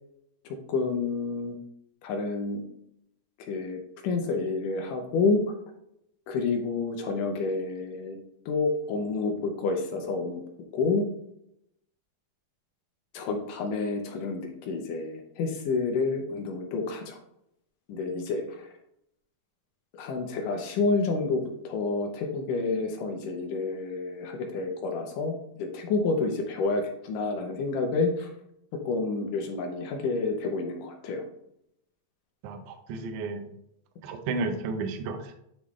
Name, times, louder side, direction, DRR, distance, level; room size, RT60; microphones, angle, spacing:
voice 1, 0.7-1.6 2.0-2.6 3.4-5.4 6.3-8.2 8.5-10.4 10.7-11.1 13.1-17.2 17.9-18.7 20.0-28.3 28.9-31.2, left 3 dB, 70° left, 3 dB, 2.2 m, -29 dB
voice 2, 32.4-33.5 34.0-35.3, right 3 dB, 75° right, 6 dB, 1.8 m, -32 dB
9.9 x 3.8 x 3.2 m, 0.76 s
omnidirectional pair, 4.4 m